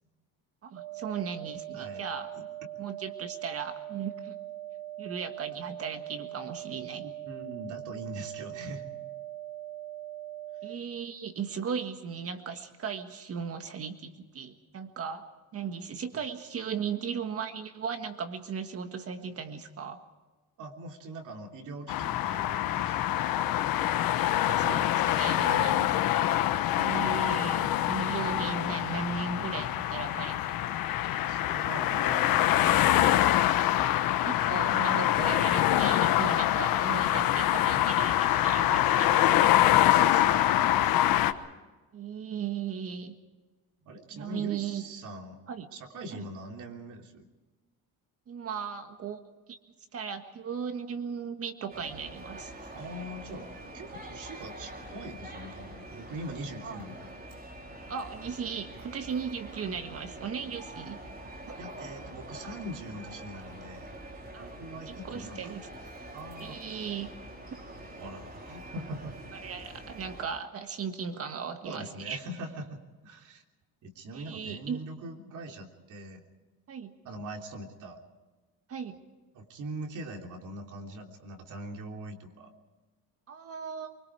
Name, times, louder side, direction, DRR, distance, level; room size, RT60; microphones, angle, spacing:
voice 1, 0.6-2.3 2.8-4.3 5.0-7.0 10.6-15.3 15.5-20.0 23.9-25.9 26.8-30.4 33.8-34.0 34.2-39.5 41.9-43.2 44.1-44.8 45.5-45.7 46.1-46.3 48.3-49.2 49.5-49.6 49.9-52.5 56.6-56.8 57.9-61.0 64.3-64.5 64.9-65.6 66.4-67.1 67.5-67.6 69.3-72.2 74.1-74.8 76.7-76.9 78.7-79.0 83.3-83.9, right 6 dB, 40° right, 7 dB, 1.6 m, -37 dB
sound 1, 0.8-10.8, right 13 dB, 75° right, 2.7 m, -41 dB
voice 2, 1.7-2.0 2.3-2.4 7.0-8.8 20.6-23.1 25.4-25.7 31.2-33.1 39.7-41.0 43.8-45.4 45.7-47.2 52.7-53.5 53.7-57.1 61.6-63.9 64.4-65.5 66.1-66.9 68.0-69.2 71.6-73.4 73.8-76.2 77.0-78.0 79.3-82.5, right 1 dB, 55° right, 2 dB, 3.3 m, -42 dB
sound 2, 21.9-41.3, left 13 dB, 70° left, 1.2 m, -25 dB
sound 3, 51.7-70.2, right 1 dB, 25° right, 4.8 m, -45 dB
24.5 x 24.5 x 4.9 m, 1.2 s
cardioid pair, 150°, 36 cm